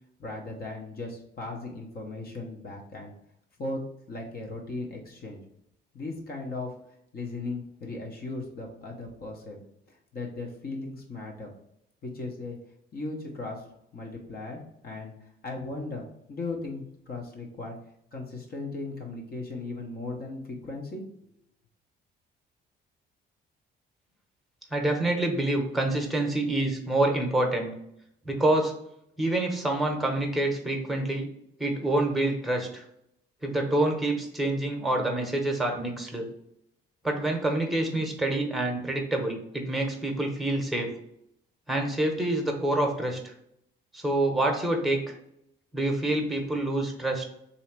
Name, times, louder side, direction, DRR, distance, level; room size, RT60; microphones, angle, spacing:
voice 1, 0.2-3.1 3.6-3.8 4.1-5.4 5.9-6.7 7.1-9.6 9.9-11.5 12.0-12.6 12.9-13.6 13.9-17.8 18.1-21.0, left 3 dB, 50° left, 0 dB, 1.0 m, -37 dB
voice 2, 24.7-27.7 28.2-28.7 29.2-31.3 31.6-32.8 33.4-36.3 37.0-40.9 41.7-43.3 43.9-45.0 45.7-47.3, right 1 dB, ahead, 2 dB, 1.0 m, -27 dB
3.1 x 2.8 x 4.5 m, 0.75 s
cardioid pair, 90°, 20 cm